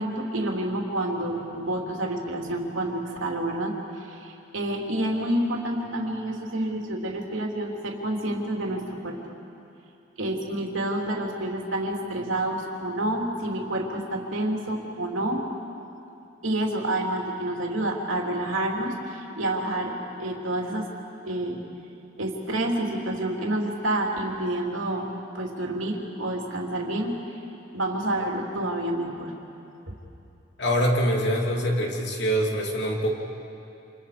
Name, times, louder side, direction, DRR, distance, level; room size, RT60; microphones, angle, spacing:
voice 1, 0.0-9.2 10.2-15.5 16.4-20.9 21.2-21.6 22.2-25.1 25.3-27.1 27.7-29.4, right 1 dB, 90° right, 0 dB, 3.1 m, -28 dB
voice 2, 30.6-33.2, equal, 60° left, 0 dB, 3.0 m, -24 dB
28.5 x 28.0 x 5.1 m, 2.7 s
head